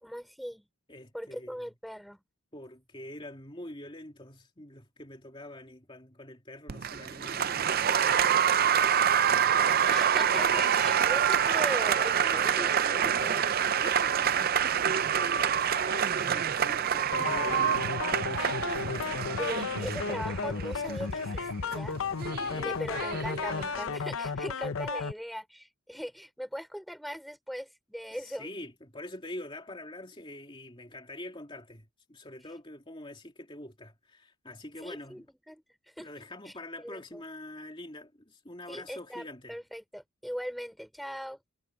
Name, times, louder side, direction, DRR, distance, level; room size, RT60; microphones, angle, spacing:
voice 1, 0.0-0.7 1.1-2.2 7.1-7.5 9.9-13.5 19.4-22.0 22.5-28.5 34.8-35.6 36.0-36.1 36.5-36.6 36.8-37.2 38.7-41.4, equal, ahead, 3.8 m, -40 dB
voice 2, 0.9-1.6 2.5-10.4 12.2-13.2 13.7-18.0 18.9-19.8 22.3-22.8 28.2-35.3 36.0-39.5, left 1 dB, 25° left, 3.0 m, -45 dB
Applause, 6.7-23.8, right 8 dB, 45° right, 0.5 m, -27 dB
sound 1, 17.1-25.1, left 5 dB, 70° left, 0.7 m, -33 dB
head